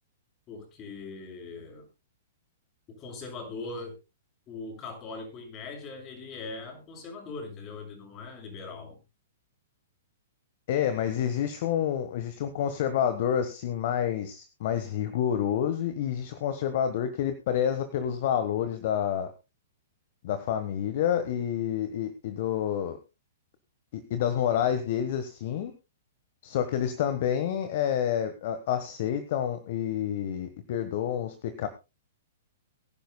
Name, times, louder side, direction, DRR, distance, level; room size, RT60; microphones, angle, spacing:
voice 1, 0.5-1.9 3.0-4.0 4.5-9.0, left 3 dB, 30° left, 2 dB, 6.2 m, -40 dB
voice 2, 10.7-19.3 20.2-23.0 23.9-25.7 26.4-31.7, left 9 dB, 55° left, 10 dB, 1.3 m, -28 dB
23.0 x 10.5 x 2.2 m, 0.26 s
hypercardioid pair, 115°, 0 cm